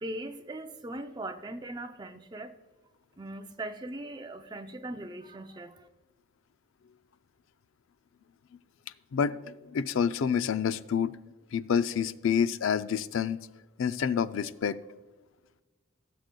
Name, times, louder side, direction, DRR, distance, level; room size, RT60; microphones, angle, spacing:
voice 1, 0.0-2.5 3.2-5.9, right 1 dB, 20° right, 7 dB, 0.5 m, -40 dB
voice 2, 9.7-11.2 11.5-13.4 13.8-14.8, left 7 dB, 75° left, 14 dB, 0.4 m, -28 dB
17.5 x 7.5 x 2.2 m, 1.2 s
head